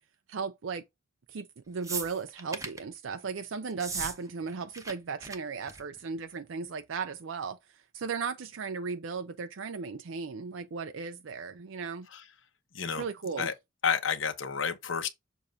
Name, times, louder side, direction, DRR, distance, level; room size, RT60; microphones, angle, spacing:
voice 1, 0.3-0.8 1.3-7.6 7.9-12.1 13.0-13.5, right 5 dB, 70° right, 0.5 m, -36 dB
sound 1, 1.8-2.8 3.7-4.2 4.4-4.9 5.2-5.4 5.7-6.0 6.9-7.0, right 4 dB, 15° right, 0.8 m, -37 dB
voice 2, 13.8-15.1, left 6 dB, 70° left, 1.0 m, -30 dB
6.8 x 2.6 x 5.7 m
head